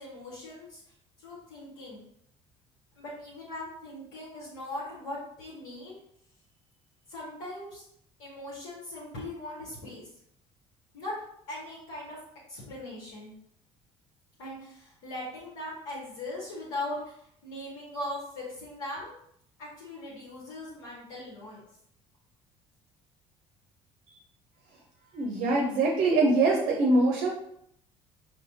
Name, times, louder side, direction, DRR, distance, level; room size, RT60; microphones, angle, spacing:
voice 1, 0.0-2.0 2.9-6.0 7.1-7.8 8.2-10.1 10.9-11.2 11.5-12.2 12.5-13.4 14.4-19.2 19.6-21.6, left 1 dB, 60° left, -5 dB, 1.0 m, -40 dB
voice 2, 25.1-27.3, right 2 dB, 50° right, 0 dB, 0.7 m, -23 dB
5.4 x 2.1 x 2.7 m, 0.70 s
figure-of-eight pair, 55°, 16 cm